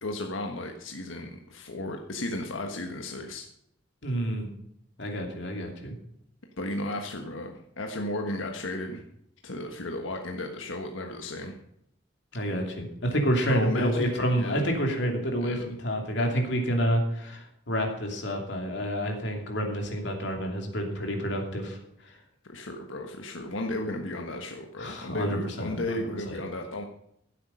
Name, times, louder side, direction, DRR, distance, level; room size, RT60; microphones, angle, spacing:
voice 1, 0.0-3.5 6.6-9.0 9.4-11.6 13.5-14.8 15.4-15.7 22.4-26.8, left 1 dB, 85° left, 3 dB, 1.4 m, -34 dB
voice 2, 4.0-4.5 5.0-5.9 12.3-21.8 24.8-25.7 26.3-26.4, equal, 60° left, 3 dB, 2.8 m, -28 dB
15.0 x 8.3 x 5.6 m, 0.74 s
head